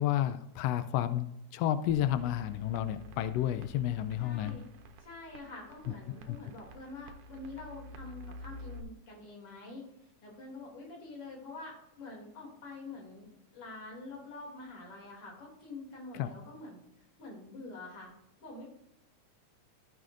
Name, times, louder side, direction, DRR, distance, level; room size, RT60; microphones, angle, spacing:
voice 1, 0.0-4.6 6.3-6.4 16.2-16.3, left 12 dB, 85° left, 11 dB, 1.4 m, -31 dB
sound 1, 1.9-8.8, equal, 75° right, 2.0 m, -49 dB
voice 2, 4.2-4.6 5.0-9.9 10.2-13.3 13.5-16.8 17.2-18.1 18.4-18.6, left 3 dB, 50° left, -2 dB, 3.5 m, -46 dB
15.0 x 6.3 x 2.5 m, 0.84 s
omnidirectional pair, 3.5 m